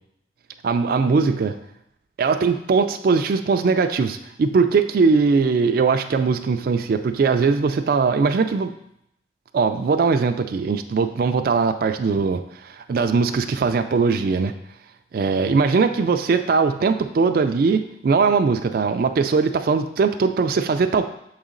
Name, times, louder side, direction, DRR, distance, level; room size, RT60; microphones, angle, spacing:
voice 1, 0.6-1.6 2.2-8.7 9.5-14.5 15.1-21.1, right 4 dB, 55° right, 8 dB, 0.3 m, -20 dB
7.0 x 4.0 x 3.7 m, 0.76 s
head